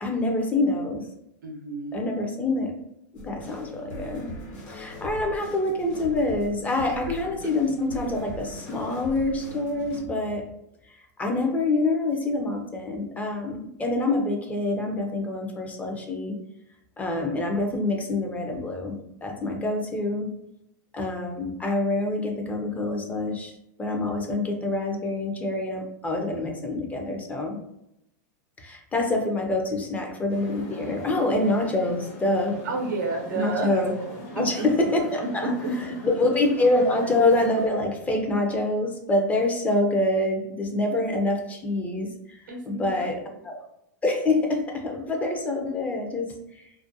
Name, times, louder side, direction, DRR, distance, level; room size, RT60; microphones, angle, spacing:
voice 1, 0.0-1.1 1.9-2.7 3.1-4.3 4.7-10.5 11.2-16.4 17.0-20.3 20.9-27.6 28.6-32.6 33.3-33.9 34.3-35.5 36.0-43.6 44.0-46.6, left 2 dB, 15° left, 2 dB, 0.4 m, -26 dB
voice 2, 1.4-2.1 6.8-7.1 32.6-33.8 34.4-34.7 35.4-36.0 42.5-43.3, right 2 dB, 85° right, 2 dB, 0.6 m, -30 dB
sound 1, 3.1-10.0, equal, 70° left, 1.1 m, -40 dB
sound 2, 30.3-37.7, left 1 dB, 50° left, 1.0 m, -41 dB
2.4 x 2.1 x 2.6 m, 0.80 s
hypercardioid pair, 125°, 10 cm